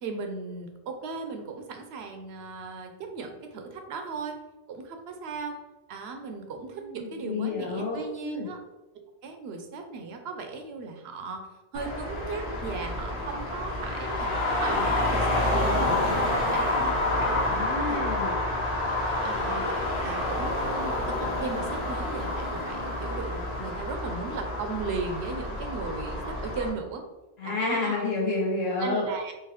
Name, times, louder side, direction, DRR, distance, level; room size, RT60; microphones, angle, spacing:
voice 1, 0.0-4.4 4.7-5.6 5.9-8.6 9.2-11.5 11.7-14.3 14.6-16.7 17.1-17.5 17.9-18.4 19.2-27.0 27.4-28.0 28.8-29.3, right 4 dB, 80° right, 5 dB, 0.8 m, -37 dB
voice 2, 6.9-8.5 17.5-18.3 27.4-29.1, left 3 dB, 75° left, -4 dB, 1.3 m, -30 dB
Traffic noise roadway noise, 11.7-26.7, left 1 dB, 55° left, 1.0 m, -28 dB
3.8 x 2.7 x 2.9 m, 1.1 s
omnidirectional pair, 1.1 m